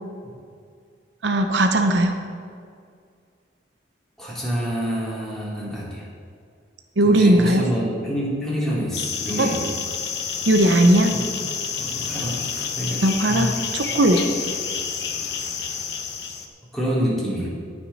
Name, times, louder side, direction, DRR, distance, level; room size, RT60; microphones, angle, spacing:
voice 1, 1.2-2.2 7.0-7.6 9.4-9.5 10.5-11.1 13.0-14.2, right 1 dB, 75° right, 5 dB, 0.9 m, -18 dB
voice 2, 4.2-6.1 7.0-9.6 11.1-11.4 11.8-12.4 12.7-13.5 16.7-17.5, equal, ahead, -7 dB, 3.0 m, -27 dB
sound 1, 8.9-16.5, left 6 dB, 65° left, 1.1 m, -29 dB
18.5 x 6.3 x 4.2 m, 2.2 s
head